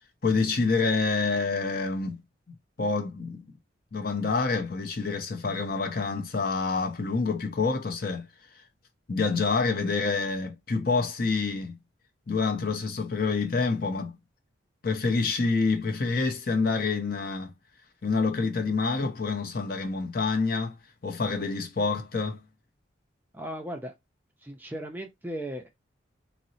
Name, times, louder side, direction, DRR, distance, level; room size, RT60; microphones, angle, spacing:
voice 1, 0.2-2.2 2.5-3.4 3.9-8.3 9.1-11.8 12.3-14.2 14.8-17.5 18.0-20.8 21.0-22.4, left 4 dB, 50° left, 0.6 m, -27 dB
voice 2, 23.3-23.9 24.4-25.7, equal, 10° right, 0.4 m, -36 dB
3.8 x 2.0 x 2.6 m
head